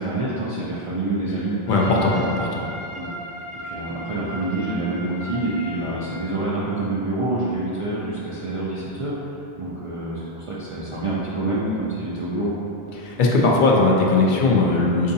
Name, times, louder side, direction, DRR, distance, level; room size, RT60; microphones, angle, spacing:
voice 1, 0.0-1.6 1.9-2.3 3.0-3.1 3.6-9.1 9.6-12.5, right 2 dB, 55° right, -7 dB, 0.3 m, -27 dB
Trumpet, 1.7-6.1, equal, 75° left, 1.2 m, -36 dB
voice 2, 1.7-2.6 13.0-15.1, left 3 dB, 60° left, -2 dB, 0.6 m, -19 dB
4.5 x 2.7 x 2.6 m, 2.7 s
omnidirectional pair, 1.0 m